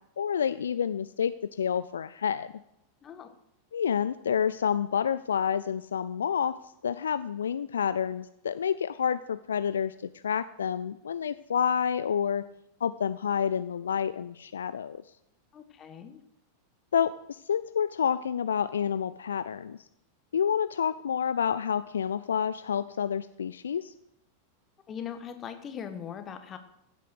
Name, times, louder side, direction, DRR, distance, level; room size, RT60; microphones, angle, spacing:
voice 1, 0.2-2.5 3.7-6.6 6.8-9.9 10.2-12.4 12.8-15.0 16.9-19.8 20.3-23.9, left 8 dB, 65° left, 14 dB, 0.4 m, -29 dB
voice 2, 3.0-3.3 15.5-16.2 24.9-26.6, left 8 dB, 25° left, 8 dB, 1.6 m, -40 dB
15.5 x 8.3 x 6.2 m, 0.80 s
figure-of-eight pair, 90°, 0 cm